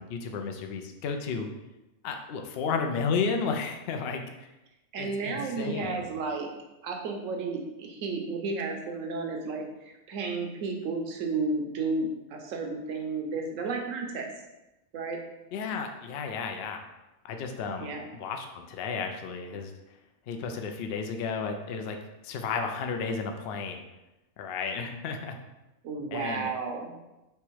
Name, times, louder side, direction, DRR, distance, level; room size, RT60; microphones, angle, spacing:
voice 1, 0.0-1.5 2.0-4.5 5.0-6.0 15.5-16.8 17.2-19.7 20.3-22.0 22.2-23.8 24.4-25.3 26.1-26.5, left 5 dB, 65° left, 4 dB, 0.6 m, -33 dB
voice 2, 4.9-6.5 6.8-9.6 10.1-14.3 14.9-15.2 17.8-18.0 25.8-27.0, right 3 dB, 70° right, 2 dB, 1.1 m, -32 dB
3.4 x 3.0 x 4.5 m, 0.99 s
omnidirectional pair, 1.4 m